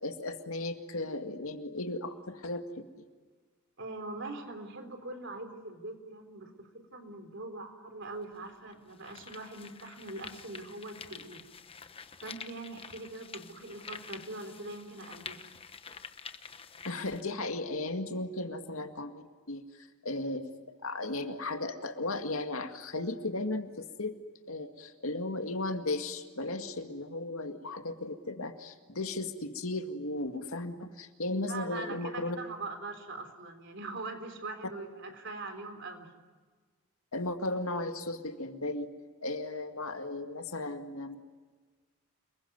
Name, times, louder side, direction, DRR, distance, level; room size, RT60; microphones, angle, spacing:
voice 1, 0.0-3.0 16.9-19.6 20.0-24.1 24.5-32.4 37.1-38.9 39.2-41.2, left 2 dB, 75° left, 6 dB, 2.1 m, -36 dB
voice 2, 3.8-11.4 12.2-15.4 31.5-36.1, right 2 dB, 55° right, 6 dB, 3.9 m, -42 dB
sound 1, 8.0-8.1 8.7-17.2, left 5 dB, 25° left, 1.0 m, -48 dB
29.5 x 21.5 x 9.5 m, 1.4 s
head